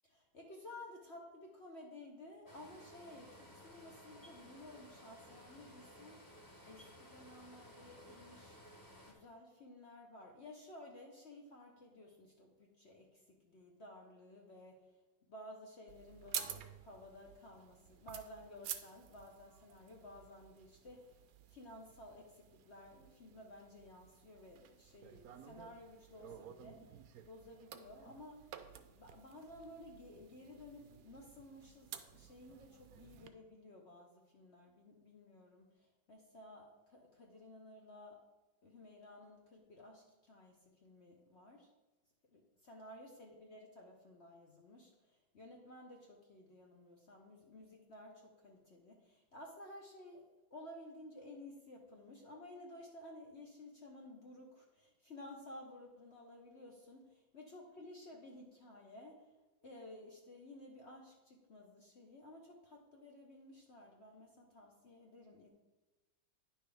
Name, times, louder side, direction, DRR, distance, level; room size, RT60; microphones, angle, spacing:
voice 1, 0.3-6.3 6.6-8.6 9.1-14.9 15.3-21.1 21.5-27.0 27.2-28.5 28.9-38.2 38.6-41.7 42.3-50.2 50.5-59.3 59.6-65.5, left 1 dB, 45° left, 0 dB, 1.0 m, -55 dB
sound 1, 2.5-9.1, equal, 15° left, 0.9 m, -57 dB
sound 2, 15.9-33.3, right 9 dB, 70° right, 0.9 m, -51 dB
10.0 x 6.1 x 3.4 m, 1.1 s
omnidirectional pair, 1.9 m